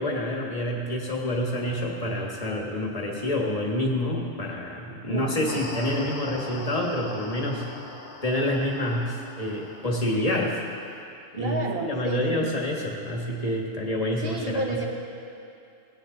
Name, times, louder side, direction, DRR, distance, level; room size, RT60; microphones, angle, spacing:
voice 1, 0.0-7.7 8.2-10.6 11.3-14.8, left 1 dB, 35° left, -1 dB, 1.6 m, -28 dB
voice 2, 5.1-5.5 11.3-12.5 14.2-14.8, right 3 dB, 55° right, 1 dB, 1.4 m, -31 dB
sound 1, 5.5-11.0, left 2 dB, 75° left, 1.7 m, -42 dB
18.0 x 10.0 x 3.9 m, 2.6 s
omnidirectional pair, 1.2 m